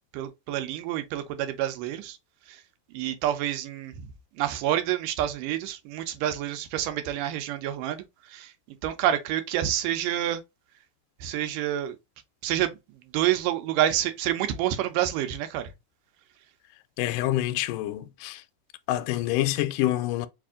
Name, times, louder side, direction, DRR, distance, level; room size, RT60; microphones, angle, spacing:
voice 1, 0.1-2.2 2.5-2.6 2.9-3.9 4.4-8.5 8.8-10.4 11.2-12.0 12.4-12.7 13.1-15.7, right 12 dB, 80° right, 2.3 m, -28 dB
voice 2, 17.0-18.4 18.9-20.3, left 15 dB, 80° left, 2.0 m, -27 dB
5.1 x 2.5 x 3.6 m
omnidirectional pair, 3.8 m